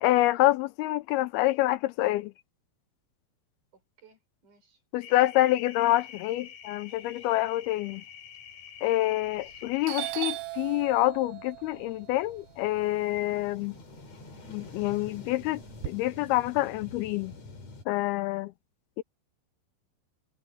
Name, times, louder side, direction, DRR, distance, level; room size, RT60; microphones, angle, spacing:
voice 1, 0.0-2.3 4.9-8.0 8.8-13.8 14.5-17.3 17.9-18.5 19.0-19.1, left 16 dB, 85° left, 2.6 m, -27 dB
voice 2, 4.0-4.8 9.2-9.7, right 5 dB, 50° right, 7.2 m, -60 dB
sound 1, 5.0-10.1, left 8 dB, 60° left, 4.8 m, -47 dB
sound 2, 6.3-6.4 6.8-17.8, left 2 dB, 45° left, 4.7 m, -50 dB
Doorbell, 9.3-9.6 9.9-14.0 14.4-15.9, right 15 dB, 80° right, 3.0 m, -38 dB
omnidirectional pair, 4.5 m